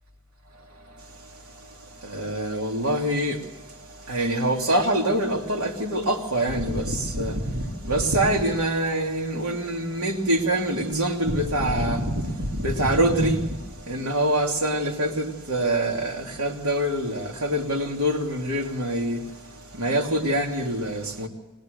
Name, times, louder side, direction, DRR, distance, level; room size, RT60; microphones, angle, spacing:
voice 1, 2.1-3.4 4.1-12.0 12.4-13.4 13.9-19.2 19.8-21.3, right 1 dB, 75° right, 3.1 m, -25 dB
21.5 x 20.0 x 6.7 m
head